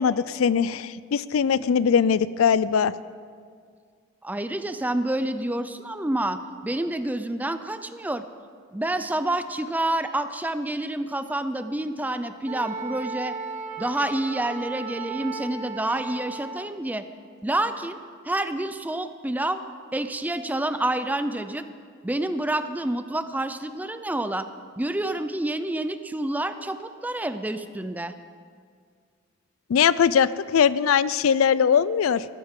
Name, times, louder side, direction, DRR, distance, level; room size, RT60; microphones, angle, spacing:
voice 1, 0.0-2.9 29.7-32.2, left 7 dB, 75° left, 17 dB, 0.4 m, -21 dB
voice 2, 4.2-8.2 8.7-13.3 13.8-17.0 17.4-18.0 18.2-19.6 19.9-21.7 22.0-24.5 24.8-28.1, right 1 dB, 10° right, 10 dB, 0.4 m, -28 dB
Wind instrument woodwind instrument, 12.5-16.7, right 4 dB, 35° right, 1.2 m, -35 dB
19.5 x 14.5 x 3.7 m, 2.1 s
head